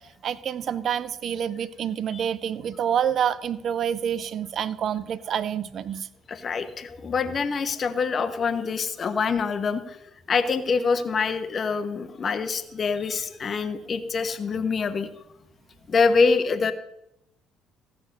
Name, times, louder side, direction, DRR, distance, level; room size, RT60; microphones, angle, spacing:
voice 1, 0.2-6.1, right 8 dB, 50° right, 17 dB, 0.6 m, -27 dB
voice 2, 6.3-10.0 10.3-15.1 15.9-16.7, left 5 dB, 40° left, 9 dB, 1.2 m, -25 dB
15.5 x 6.9 x 6.7 m, 0.83 s
figure-of-eight pair, 50°, 0 cm